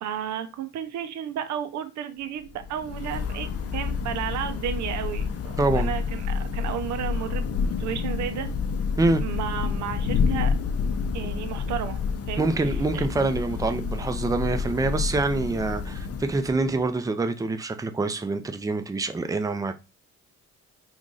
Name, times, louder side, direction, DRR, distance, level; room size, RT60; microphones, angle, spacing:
voice 1, 0.0-7.4 7.8-8.5 9.2-10.5 11.1-12.0 12.3-13.1, right 9 dB, 70° right, 0.6 m, -33 dB
Thunder / Rain, 2.5-16.8, left 5 dB, 55° left, 0.6 m, -29 dB
voice 2, 5.6-5.9 9.0-9.2 12.4-19.7, right 3 dB, 10° right, 0.4 m, -26 dB
3.1 x 2.5 x 3.7 m
cardioid pair, 90°, 30 cm